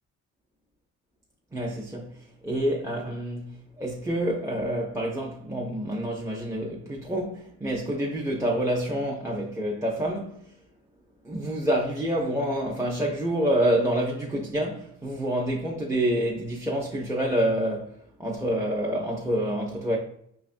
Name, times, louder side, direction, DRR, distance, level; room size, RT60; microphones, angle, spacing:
voice 1, 1.5-2.2 2.4-10.5 11.2-17.9 18.2-20.0, right 1 dB, 10° right, 0.6 m, -27 dB
5.3 x 2.3 x 2.5 m
cardioid pair, 90°, 30 cm